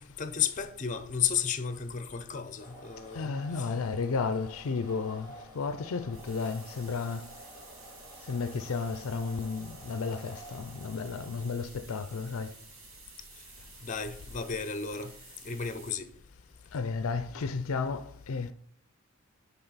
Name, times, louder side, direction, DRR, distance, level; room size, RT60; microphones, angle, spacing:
voice 1, 0.0-3.3 13.8-15.1 15.4-16.1, left 7 dB, 35° left, 0.6 m, -33 dB
sound 1, 2.6-11.5, right 1 dB, 20° right, 1.8 m, -51 dB
voice 2, 3.1-7.3 8.3-12.5 16.7-18.5, left 4 dB, 80° left, 0.5 m, -33 dB
sound 2, 6.1-15.9, right 4 dB, 75° right, 1.8 m, -52 dB
10.5 x 3.5 x 4.0 m
head